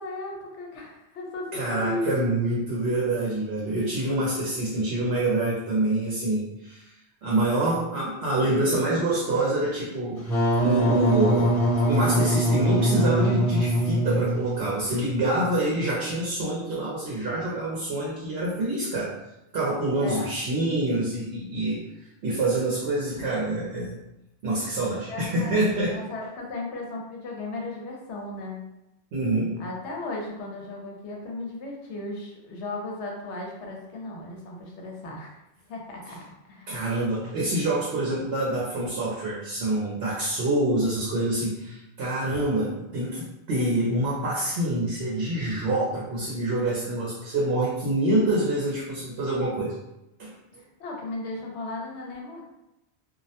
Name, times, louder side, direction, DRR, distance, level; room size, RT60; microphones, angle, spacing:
voice 1, 0.0-2.1 20.0-20.3 25.1-25.6 25.8-28.6 29.6-35.3 35.7-36.8 50.6-52.4, left 2 dB, 80° left, -1 dB, 0.9 m, -36 dB
voice 2, 1.5-6.9 7.2-10.3 10.6-11.6 11.9-19.2 19.5-21.8 22.2-23.9 24.4-26.0 29.1-29.6 36.7-49.7 50.2-50.3, right 1 dB, 70° right, -5 dB, 0.8 m, -26 dB
Wind instrument woodwind instrument, 10.2-14.8, right 1 dB, 45° left, 1.0 m, -23 dB
2.3 x 2.0 x 2.7 m, 0.91 s
omnidirectional pair, 1.2 m